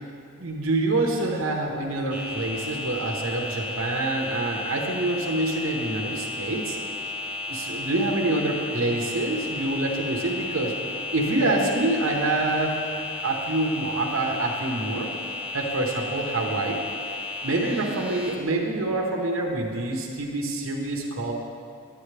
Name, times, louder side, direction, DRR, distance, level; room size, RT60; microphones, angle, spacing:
voice 1, 0.4-6.8 7.5-10.8 11.1-12.8 13.2-15.1 15.5-16.8 17.4-21.3, right 2 dB, 80° right, 0 dB, 1.0 m, -26 dB
sound 1, 2.1-18.4, left 3 dB, 5° right, 0.9 m, -34 dB
10.0 x 8.8 x 3.3 m, 2.3 s
head